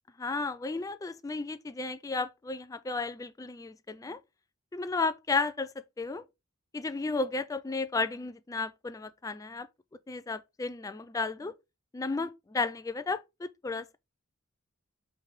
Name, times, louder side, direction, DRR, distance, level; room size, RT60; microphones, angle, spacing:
voice 1, 0.2-4.2 4.7-6.2 6.7-9.7 10.1-11.5 11.9-14.0, left 3 dB, 15° left, 0.3 m, -33 dB
8.1 x 3.3 x 3.6 m
head